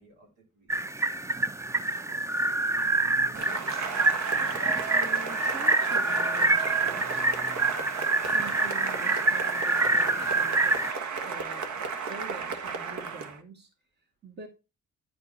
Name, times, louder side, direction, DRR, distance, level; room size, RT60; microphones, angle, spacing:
voice 1, 0.0-3.6, right 4 dB, 90° right, 1 dB, 3.4 m, -56 dB
sound 1, 0.7-10.9, right 2 dB, 10° right, 0.4 m, -26 dB
Cheering / Applause, 3.3-13.4, right 5 dB, 70° right, 1.3 m, -34 dB
voice 2, 4.9-7.2 7.8-8.0 8.3-11.8 12.1-13.7 14.2-14.5, right 2 dB, 35° right, 4 dB, 2.1 m, -45 dB
9.9 x 4.5 x 4.0 m, 0.28 s
cardioid pair, 90°, 30 cm